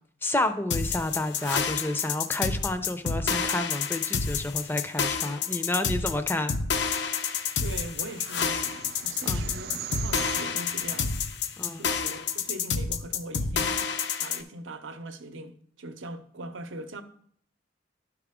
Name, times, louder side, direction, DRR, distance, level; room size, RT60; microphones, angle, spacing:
voice 1, 0.2-6.6 9.2-9.5 11.6-11.8, left 2 dB, 10° left, 0.5 m, -30 dB
sound 1, 0.7-14.4, left 6 dB, 65° left, 0.5 m, -29 dB
sound 2, 7.1-12.5, right 8 dB, 55° right, 0.4 m, -42 dB
voice 2, 7.6-11.2 11.7-13.8 14.2-17.0, right 1 dB, 85° right, 0.7 m, -41 dB
11.5 x 4.9 x 3.6 m
head